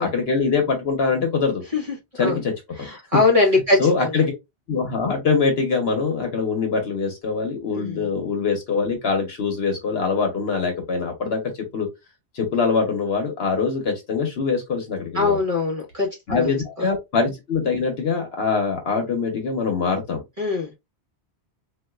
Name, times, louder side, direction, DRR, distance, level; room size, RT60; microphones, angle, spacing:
voice 1, 0.0-1.6 2.2-2.5 3.8-4.3 4.7-11.4 11.7-11.9 12.3-15.4 16.3-20.2, left 4 dB, 65° left, 1.1 m, -23 dB
voice 2, 2.8-4.1 7.7-8.0 15.1-16.5 20.4-20.7, left 3 dB, 35° right, 1.2 m, -21 dB
3.9 x 2.5 x 2.2 m
omnidirectional pair, 1.1 m